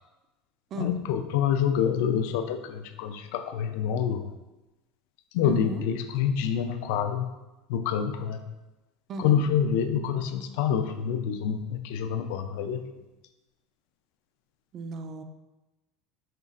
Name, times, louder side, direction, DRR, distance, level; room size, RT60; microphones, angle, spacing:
voice 1, 0.8-4.2 5.3-7.3 7.7-8.4 9.2-12.8, left 8 dB, 70° left, 8 dB, 0.4 m, -27 dB
voice 2, 5.4-5.8 9.1-9.4 14.7-15.2, right 3 dB, 30° right, 7 dB, 0.3 m, -35 dB
5.5 x 3.9 x 2.4 m, 1.1 s
cardioid pair, 165°, 0 cm